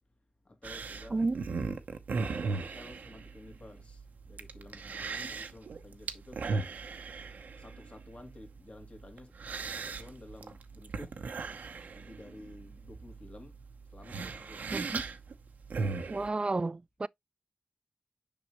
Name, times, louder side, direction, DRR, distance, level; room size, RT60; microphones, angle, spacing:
voice 1, 0.4-1.8 2.2-6.7 7.6-11.2 11.9-13.6 13.9-14.7, left 2 dB, 50° left, 2.0 m, -52 dB
sound 1, 0.6-16.3, right 4 dB, 90° right, 0.8 m, -38 dB
voice 2, 14.7-15.0 16.1-17.1, right 3 dB, 40° right, 0.4 m, -31 dB
6.7 x 5.0 x 3.0 m
cardioid pair, 40°, 3 cm